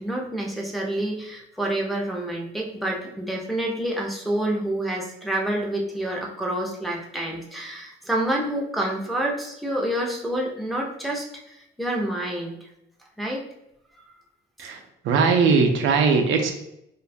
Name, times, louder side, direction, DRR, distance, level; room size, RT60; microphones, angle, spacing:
voice 1, 0.0-12.5 13.2-13.4, right 1 dB, ahead, -2 dB, 0.5 m, -28 dB
voice 2, 15.0-16.5, right 5 dB, 75° right, 4 dB, 0.4 m, -19 dB
2.4 x 2.2 x 2.6 m, 0.80 s
cardioid pair, 90°, 20 cm